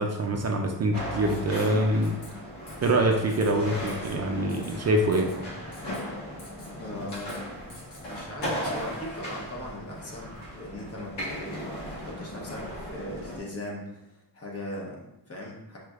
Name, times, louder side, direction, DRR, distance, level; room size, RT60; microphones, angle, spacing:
voice 1, 0.0-2.1 2.8-5.3, right 1 dB, 40° right, 2 dB, 0.4 m, -25 dB
sound 1, 0.9-13.4, equal, 85° left, 1.4 m, -37 dB
Writing, 1.2-1.8 2.0-2.3 2.7-2.9 3.3-3.5 3.9-4.2 4.5-4.8 5.1-5.4 5.7-6.0 6.4-6.7 7.1-7.4 7.7-8.0, left 2 dB, 55° left, 1.2 m, -49 dB
voice 2, 6.8-7.6 8.0-15.8, left 1 dB, 35° left, -2 dB, 0.9 m, -39 dB
5.2 x 3.2 x 2.4 m, 0.90 s
wide cardioid pair, 140°, 40 cm